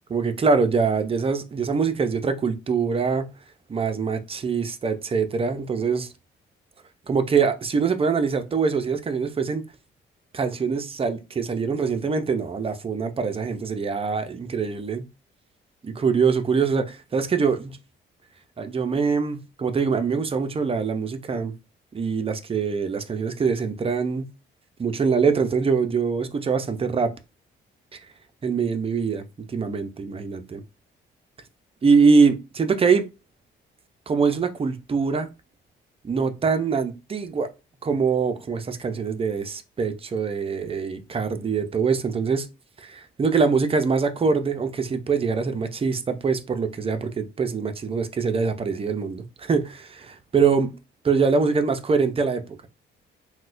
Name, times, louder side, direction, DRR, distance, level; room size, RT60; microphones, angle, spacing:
voice 1, 0.1-3.3 3.7-6.1 7.1-9.7 10.3-15.1 15.8-17.8 18.6-21.5 21.9-24.3 24.8-27.1 27.9-28.0 28.4-29.2 29.5-30.6 31.8-33.0 34.1-35.3 36.0-37.5 37.8-42.5 42.8-50.7 51.0-52.7, right 5 dB, 30° right, 0.5 m, -23 dB
4.0 x 2.2 x 2.5 m
cardioid pair, 90°, 20 cm